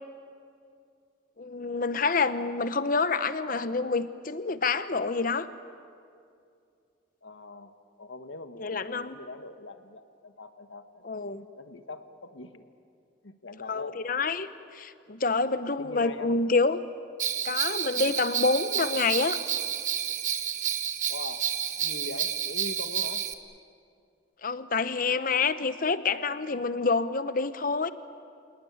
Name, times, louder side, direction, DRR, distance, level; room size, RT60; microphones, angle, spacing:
voice 1, 1.4-5.5 8.6-9.2 11.0-11.5 13.7-16.8 17.4-19.4 24.4-27.9, left 4 dB, 45° left, 13 dB, 0.9 m, -27 dB
voice 2, 7.2-11.2 11.5-12.7 13.2-14.0 15.8-16.4 21.1-21.5 21.8-23.3, left 3 dB, 85° left, 9 dB, 1.4 m, -42 dB
Bell, 17.2-23.3, right 9 dB, 40° right, 1.1 m, -30 dB
27.5 x 19.0 x 9.6 m, 2.4 s
head